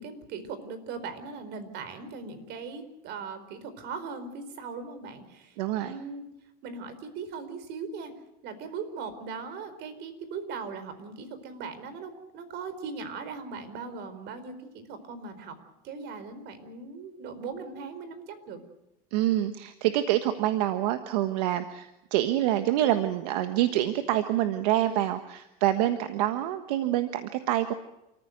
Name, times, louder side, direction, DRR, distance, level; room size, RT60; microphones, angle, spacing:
voice 1, 0.0-6.3 6.6-8.1 8.4-15.5 15.8-18.6, right 5 dB, 60° right, 11 dB, 4.6 m, -39 dB
voice 2, 5.6-6.0 19.1-27.7, right 13 dB, 80° right, 9 dB, 1.4 m, -26 dB
29.0 x 15.0 x 8.0 m, 0.90 s
supercardioid pair, 115°, 20 cm